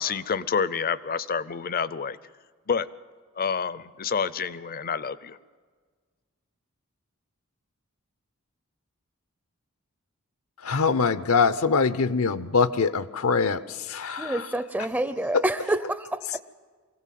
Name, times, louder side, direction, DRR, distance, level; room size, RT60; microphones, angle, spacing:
voice 1, 0.0-2.2 2.7-2.9 3.4-5.4, left 6 dB, 45° left, 0.6 m, -28 dB
voice 2, 10.6-13.6 13.9-14.5 15.3-15.4, left 5 dB, 70° left, 0.8 m, -23 dB
voice 3, 14.2-16.4, right 1 dB, 10° right, 0.5 m, -28 dB
24.0 x 16.5 x 7.6 m
head